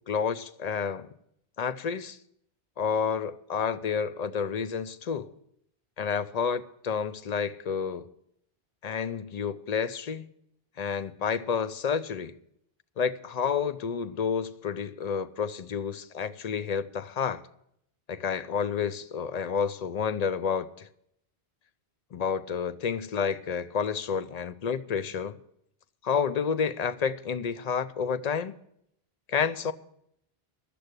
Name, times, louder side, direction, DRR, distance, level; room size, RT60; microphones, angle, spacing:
voice 1, 0.1-1.1 1.6-2.2 2.8-5.3 6.0-8.1 8.8-10.3 10.8-12.4 13.0-17.4 18.1-20.9 22.1-25.4 26.0-28.5 29.3-29.7, left 6 dB, 50° left, 0.6 m, -30 dB
11.5 x 7.7 x 8.1 m
omnidirectional pair, 1.1 m